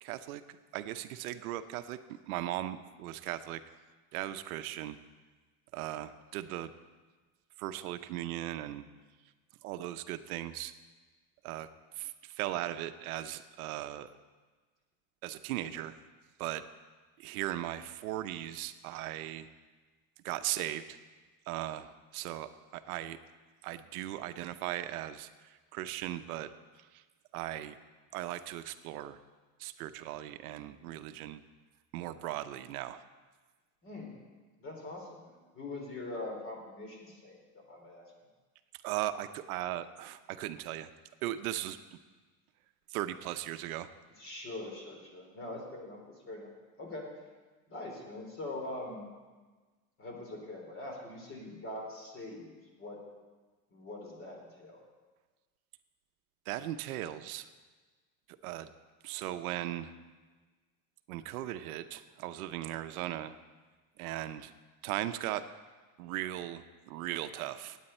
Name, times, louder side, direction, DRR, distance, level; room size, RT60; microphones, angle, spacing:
voice 1, 0.0-0.4 0.7-2.0 2.3-3.6 4.1-5.0 5.7-6.7 7.6-8.8 9.6-10.7 11.4-11.7 11.9-14.1 15.2-15.9 16.4-16.6 17.2-19.5 20.2-21.0 21.5-23.2 23.6-26.5 26.9-27.0 27.3-27.8 28.1-29.2 29.6-31.4 31.9-33.0 38.8-40.9 41.2-42.0 42.9-43.9 56.5-57.5 58.4-58.7 59.0-59.9 61.1-63.3 64.0-64.5 64.8-65.4 66.0-67.8, right 13 dB, 85° right, 11 dB, 0.8 m, -38 dB
voice 2, 33.8-34.2 34.6-38.1 44.2-46.5 46.8-47.1 47.7-49.1 50.0-52.5 52.8-53.0 53.7-54.8, left 2 dB, 30° left, 1 dB, 3.2 m, -43 dB
17.0 x 9.0 x 4.3 m, 1.3 s
supercardioid pair, 145°, 43 cm